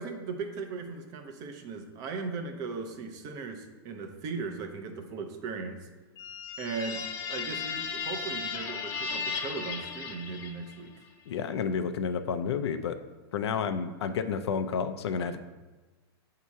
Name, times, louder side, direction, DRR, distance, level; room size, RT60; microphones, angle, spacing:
voice 1, 0.0-5.9 6.6-10.9, right 4 dB, 30° right, 6 dB, 0.5 m, -38 dB
sound 1, 6.2-10.9, left 5 dB, 25° left, 0.4 m, -35 dB
voice 2, 11.3-13.0 13.3-15.4, left 6 dB, 90° left, 9 dB, 0.5 m, -30 dB
7.2 x 2.8 x 4.6 m, 1.2 s
supercardioid pair, 160°, 13 cm